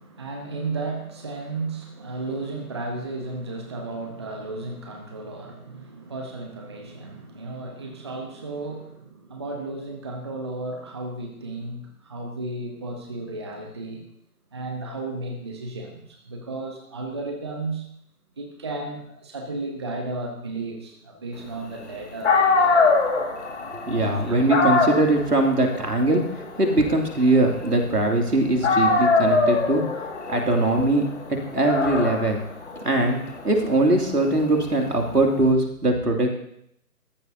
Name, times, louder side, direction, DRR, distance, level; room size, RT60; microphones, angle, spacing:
voice 1, 0.0-14.1 14.5-17.9 18.4-23.0 24.0-24.4, right 2 dB, 20° right, 3 dB, 0.8 m, -34 dB
Dog, 21.9-22.0 22.2-28.3 28.6-35.4, left 3 dB, 45° left, 2.1 m, -24 dB
voice 2, 23.7-29.8 30.3-31.0 31.3-32.4 32.8-33.2 33.4-36.3, right 2 dB, 85° right, 2 dB, 2.7 m, -21 dB
16.0 x 14.0 x 2.7 m, 0.72 s
figure-of-eight pair, 150°, 46 cm